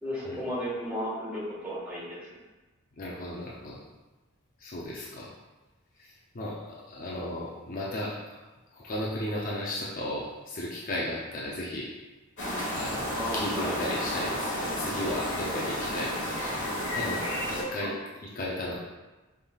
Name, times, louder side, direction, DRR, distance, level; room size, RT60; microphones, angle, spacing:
voice 1, 0.0-2.3 13.1-13.8 17.8-17.9, equal, 5° right, -8 dB, 1.4 m, -34 dB
voice 2, 3.0-3.8 4.6-5.3 6.0-8.4 8.7-11.9 12.7-16.6 16.9-17.9 18.4-18.8, left 1 dB, 40° left, -5 dB, 0.5 m, -35 dB
sound 1, 12.4-17.6, equal, 55° left, 1.3 m, -32 dB
5.4 x 3.5 x 2.3 m, 1.1 s
head